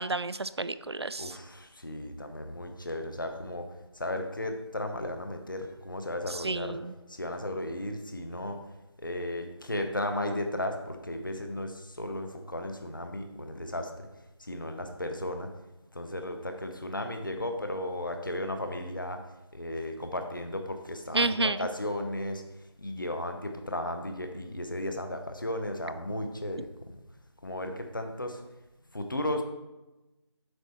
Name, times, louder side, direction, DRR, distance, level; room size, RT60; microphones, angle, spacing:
voice 1, 0.0-1.3 6.3-6.9 21.1-21.6, right 3 dB, 60° right, 14 dB, 0.4 m, -30 dB
voice 2, 1.2-3.7 3.9-6.8 7.1-8.6 9.0-14.1 14.4-15.5 15.9-19.2 19.5-22.4 22.8-27.0 27.4-28.4 28.9-29.4, left 1 dB, 45° left, 6 dB, 0.9 m, -35 dB
7.9 x 5.4 x 4.3 m, 1.0 s
figure-of-eight pair, 175°, 15 cm